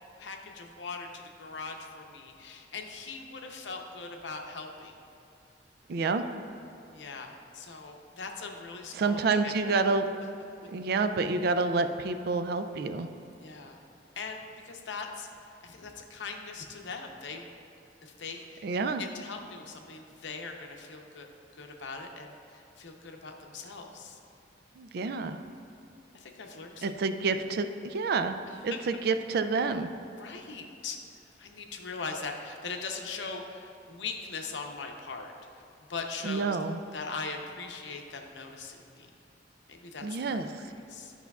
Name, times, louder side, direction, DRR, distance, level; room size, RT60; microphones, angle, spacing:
voice 1, 0.2-4.9 6.9-9.9 13.4-13.8 14.2-15.3 15.6-17.4 18.0-18.7 19.0-21.3 21.6-24.2 25.7-25.8 26.1-27.0 27.3-27.4 30.2-31.0 31.4-35.3 35.9-36.6 36.9-39.1 39.7-41.1, left 4 dB, 80° left, 3 dB, 0.7 m, -40 dB
voice 2, 5.9-6.2 8.9-10.0 10.7-13.1 18.6-19.0 24.8-25.4 26.8-28.3 28.6-29.9 36.2-36.8 40.0-40.5, right 4 dB, 60° right, 9 dB, 0.4 m, -28 dB
11.5 x 5.6 x 2.3 m, 2.7 s
head